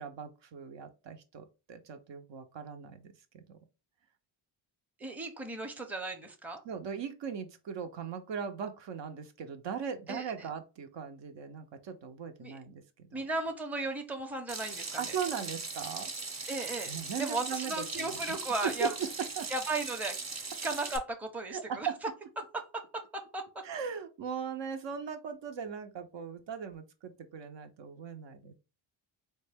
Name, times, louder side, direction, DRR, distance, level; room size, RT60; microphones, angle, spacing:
voice 1, 0.0-3.6 6.6-13.3 15.0-16.1 16.9-18.2 18.6-19.1 19.4-19.5 21.5-22.0 23.6-28.5, right 7 dB, 60° right, 0.7 m, -39 dB
voice 2, 5.0-6.6 10.1-10.5 12.4-12.6 13.1-15.2 16.5-16.9 17.2-18.9 19.5-20.2 20.6-21.9 22.4-23.6, right 2 dB, 5° right, 0.6 m, -36 dB
Water tap faucet / Sink (filling or washing), 14.5-21.0, right 3 dB, 35° right, 0.8 m, -39 dB
3.6 x 2.2 x 3.4 m
cardioid pair, 75°, 49 cm